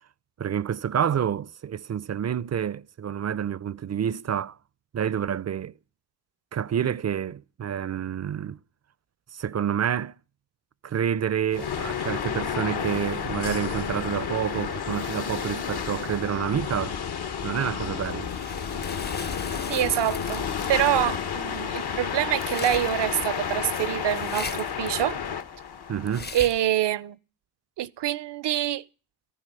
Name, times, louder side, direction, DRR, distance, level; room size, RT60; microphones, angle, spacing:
voice 1, 0.4-4.6 4.9-5.7 6.5-8.6 9.3-10.2 10.8-17.0 17.4-18.3 25.9-26.3, right 8 dB, 40° right, 0.6 m, -28 dB
sound 1, 11.5-26.6, left 7 dB, 60° left, 1.3 m, -31 dB
sound 2, 17.5-26.7, left 4 dB, 25° left, 0.7 m, -40 dB
voice 2, 19.7-25.2 26.3-27.2 27.8-28.8, right 12 dB, 75° right, 0.7 m, -26 dB
14.0 x 11.0 x 5.5 m
supercardioid pair, 45°, 42 cm